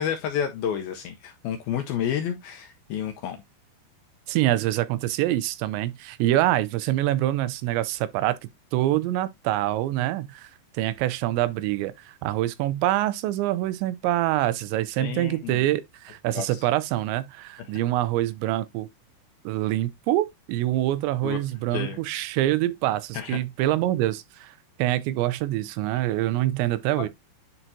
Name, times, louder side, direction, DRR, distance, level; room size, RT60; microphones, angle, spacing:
voice 1, 0.0-3.4 15.0-15.7 16.3-16.6 21.2-21.4 21.7-22.0 23.1-23.4 27.0-27.1, left 9 dB, 80° left, 2.2 m, -30 dB
voice 2, 4.3-8.4 8.7-18.9 19.5-27.1, right 15 dB, 90° right, 3.0 m, -25 dB
10.0 x 4.5 x 2.7 m
omnidirectional pair, 5.1 m